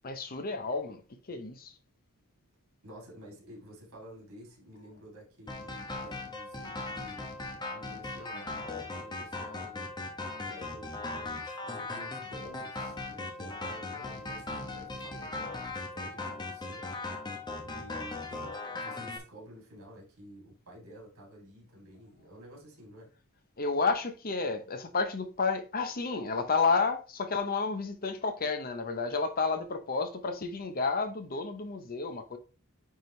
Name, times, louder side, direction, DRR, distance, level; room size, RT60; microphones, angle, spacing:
voice 1, 0.0-1.0 1.3-1.7 8.2-8.5 23.6-32.4, left 4 dB, 40° left, 0.8 m, -31 dB
voice 2, 2.8-7.4 7.7-9.9 10.4-16.9 17.6-23.1, equal, 65° right, 3.0 m, -51 dB
sound 1, 5.5-19.2, left 2 dB, 20° left, 1.0 m, -38 dB
9.1 x 3.7 x 3.2 m
head